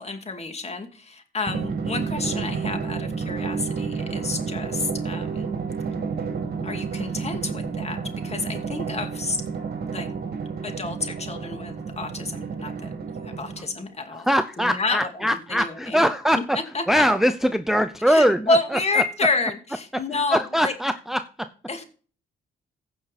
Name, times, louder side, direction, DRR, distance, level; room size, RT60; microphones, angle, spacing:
voice 1, 0.0-5.5 6.6-8.0 8.2-9.4 9.9-10.1 10.6-12.9 13.2-14.3 14.6-16.1 16.7-17.0 18.1-20.7 21.7-21.8, left 3 dB, 30° left, 6 dB, 2.6 m, -29 dB
Drum, 1.5-13.8, right 5 dB, 50° right, 2.5 m, -30 dB
voice 2, 14.1-16.6 16.9-19.0 20.3-21.5, equal, ahead, 10 dB, 0.6 m, -22 dB
16.0 x 6.1 x 4.2 m, 0.39 s
cardioid pair, 90°, 20 cm